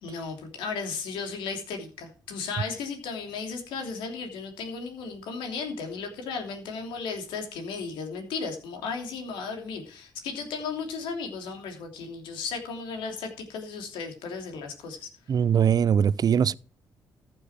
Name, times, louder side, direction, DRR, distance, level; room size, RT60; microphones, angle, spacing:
voice 1, 0.0-15.1, left 5 dB, 85° left, 3.1 m, -35 dB
voice 2, 15.3-16.5, right 8 dB, 50° right, 0.6 m, -21 dB
14.5 x 7.4 x 4.4 m
supercardioid pair, 55°, 8 cm